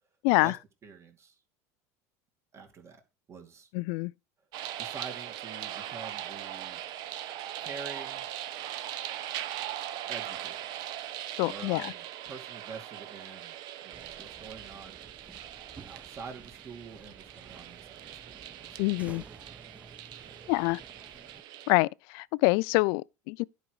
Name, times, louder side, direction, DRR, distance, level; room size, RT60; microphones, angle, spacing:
voice 1, 0.8-1.4 2.5-3.0 3.3-3.7 4.8-6.8 7.6-8.3 10.1-10.6 11.5-13.6 13.8-15.0 15.9-18.9 19.6-19.9 20.2-20.4, right 5 dB, 35° right, 2.4 m, -46 dB
voice 2, 3.7-4.1 11.4-11.9 18.8-19.2 20.5-20.8 21.7-23.4, left 25 dB, 65° left, 0.4 m, -26 dB
sound 1, 4.5-21.7, right 12 dB, 55° right, 0.9 m, -40 dB
sound 2, 13.9-21.4, right 4 dB, 15° right, 0.8 m, -52 dB
11.0 x 5.1 x 4.7 m
supercardioid pair, 100°, 8 cm